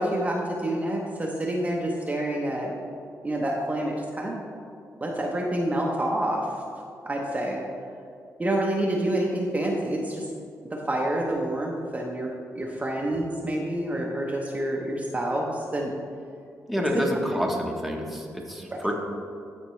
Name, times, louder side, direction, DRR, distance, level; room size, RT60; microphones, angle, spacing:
voice 1, 0.0-2.7 3.2-4.4 5.0-6.5 7.0-7.6 8.4-10.3 10.6-15.9 17.1-17.5 18.7-18.8, right 1 dB, 25° right, -2 dB, 0.9 m, -28 dB
voice 2, 16.7-18.9, equal, ahead, -1 dB, 1.1 m, -28 dB
13.0 x 4.3 x 3.2 m, 2.4 s
cardioid pair, 85°, 6 cm